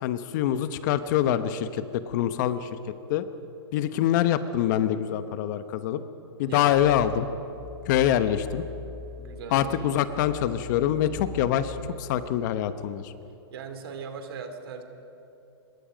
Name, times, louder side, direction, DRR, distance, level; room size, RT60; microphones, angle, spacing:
voice 1, 0.0-2.7 3.1-3.2 3.7-6.0 6.4-7.3 7.9-8.6 9.5-13.1, left 11 dB, 45° left, 12 dB, 1.0 m, -25 dB
voice 2, 6.5-7.1 9.2-10.0 13.5-14.8, right 6 dB, 60° right, 7 dB, 2.6 m, -40 dB
sound 1, 6.7-12.3, left 5 dB, ahead, 1.6 m, -43 dB
24.5 x 21.5 x 5.2 m, 2.9 s
hypercardioid pair, 140°, 14 cm